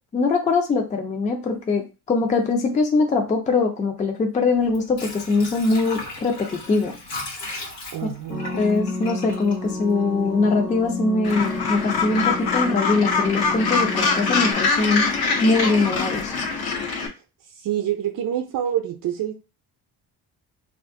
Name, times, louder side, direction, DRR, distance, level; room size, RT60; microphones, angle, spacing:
voice 1, 0.1-6.9 8.6-15.1 15.4-16.3, left 3 dB, 20° left, 3 dB, 0.3 m, -22 dB
Water / Sink (filling or washing), 4.6-10.4 10.8-10.9, left 2 dB, 85° left, 1.2 m, -37 dB
voice 2, 7.9-8.6 17.6-19.3, right 10 dB, 60° right, 3 dB, 0.5 m, -26 dB
sound 1, 8.3-14.5, left 2 dB, 50° left, 1.0 m, -31 dB
Gull seagull, 11.2-17.1, left 4 dB, 70° left, 0.7 m, -24 dB
2.5 x 2.5 x 3.5 m, 0.30 s
cardioid pair, 175°, 40 cm